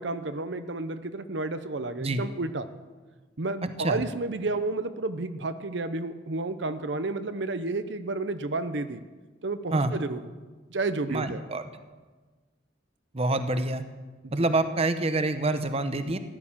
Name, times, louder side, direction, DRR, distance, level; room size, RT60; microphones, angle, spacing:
voice 1, 0.0-2.7 3.4-9.0 9.4-10.2 10.7-11.4 14.2-14.5, right 2 dB, 65° right, 11 dB, 0.8 m, -31 dB
voice 2, 11.1-11.6 13.1-13.8 14.3-16.2, right 2 dB, 35° right, 10 dB, 0.9 m, -26 dB
15.5 x 11.0 x 7.3 m, 1.3 s
head